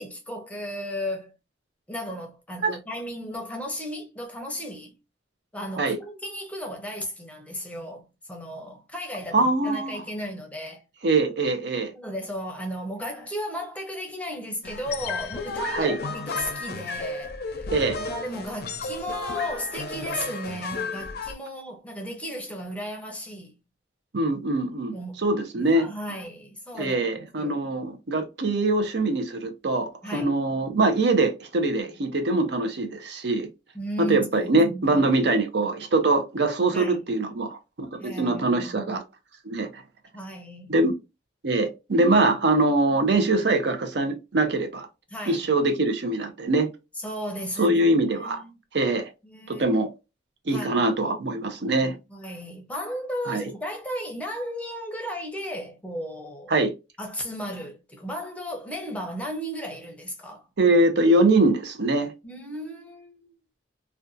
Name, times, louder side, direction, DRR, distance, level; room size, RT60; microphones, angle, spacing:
voice 1, 0.0-1.3 1.9-4.9 5.5-10.8 11.9-17.7 18.0-23.5 24.9-25.3 25.6-27.6 30.0-30.4 33.7-35.1 36.7-37.0 38.0-39.0 40.1-40.8 45.1-45.5 46.9-48.5 49.2-49.8 50.5-50.9 52.1-56.5 57.0-60.4 62.2-63.3, equal, 10° left, 0.6 m, -35 dB
voice 2, 9.3-10.0 11.0-11.9 15.7-16.0 17.7-18.0 24.1-24.9 25.2-25.9 26.8-33.5 34.0-39.0 39.5-39.8 40.7-40.9 41.4-44.9 45.3-46.7 47.6-48.4 48.7-49.1 49.5-49.9 50.5-51.9 53.3-53.4 56.5-56.7 60.6-62.1, right 2 dB, 65° right, 0.6 m, -23 dB
sound 1, 14.6-21.3, left 4 dB, 55° left, 0.5 m, -33 dB
2.5 x 2.2 x 2.5 m
head